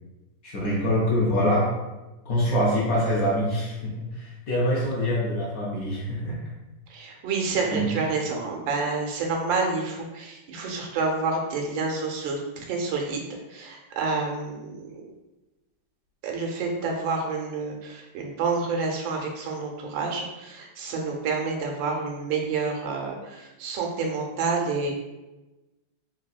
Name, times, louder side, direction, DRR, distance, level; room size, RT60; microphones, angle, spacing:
voice 1, 0.4-1.7 2.3-6.4 7.7-7.9, equal, 65° left, -5 dB, 0.9 m, -25 dB
voice 2, 6.9-13.2 13.5-15.1 16.2-24.9, right 4 dB, 90° right, 0 dB, 1.4 m, -29 dB
3.4 x 2.7 x 2.3 m, 1.1 s
omnidirectional pair, 2.0 m